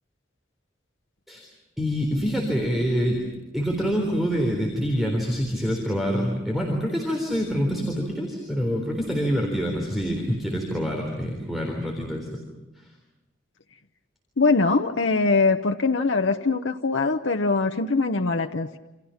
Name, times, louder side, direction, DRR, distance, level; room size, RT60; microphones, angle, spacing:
voice 1, 1.8-3.2 3.5-12.4 12.8-12.9, equal, ahead, 0 dB, 3.8 m, -26 dB
voice 2, 14.4-18.8, left 3 dB, 75° left, 4 dB, 0.9 m, -22 dB
29.0 x 27.5 x 5.8 m, 1.0 s
head